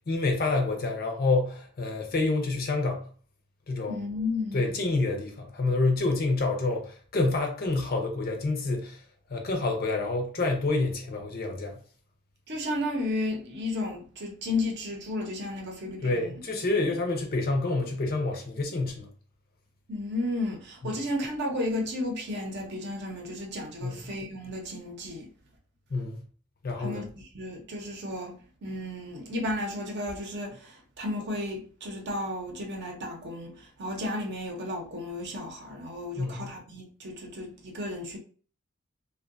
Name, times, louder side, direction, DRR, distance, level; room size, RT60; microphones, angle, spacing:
voice 1, 0.1-3.1 3.7-4.0 4.5-9.0 9.3-11.8 16.0-19.1 23.8-24.0 25.9-26.2 26.6-27.0 36.2-36.5, left 3 dB, 45° left, 0.5 m, -28 dB
voice 2, 3.9-4.6 12.5-16.4 19.9-25.3 26.8-28.3 28.6-38.2, left 1 dB, 55° right, 0.6 m, -33 dB
2.6 x 2.2 x 2.5 m
head